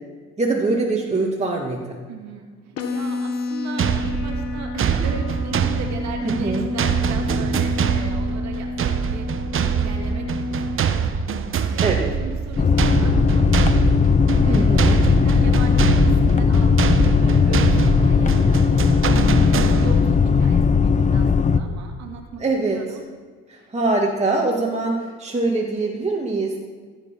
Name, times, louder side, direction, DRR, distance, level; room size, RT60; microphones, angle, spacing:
voice 1, 0.4-2.0 6.2-6.7 11.8-12.1 14.5-15.0 22.4-22.8 23.5-26.6, right 3 dB, 20° right, -1 dB, 2.1 m, -23 dB
voice 2, 2.1-9.3 9.6-11.2 11.4-13.6 14.2-18.9 19.3-22.4 22.7-23.1 23.6-23.7, right 5 dB, 70° right, 2 dB, 2.2 m, -37 dB
sound 1, 2.8-10.8, left 3 dB, 60° left, 1.7 m, -30 dB
sound 2, 3.8-20.2, right 7 dB, 45° right, 1.0 m, -24 dB
sound 3, 12.6-21.6, left 5 dB, 25° left, 0.7 m, -17 dB
15.0 x 8.4 x 5.8 m, 1.5 s
supercardioid pair, 75°, 29 cm